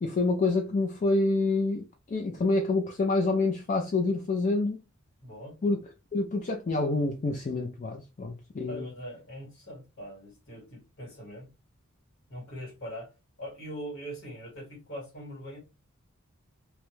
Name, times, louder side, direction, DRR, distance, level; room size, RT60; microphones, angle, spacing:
voice 1, 0.0-4.8 5.6-5.8 6.1-8.9, left 3 dB, 35° left, 0.4 m, -27 dB
voice 2, 5.2-5.6 8.7-11.5 12.3-13.1 13.4-15.6, equal, 65° left, 1.8 m, -41 dB
2.9 x 2.2 x 3.0 m
head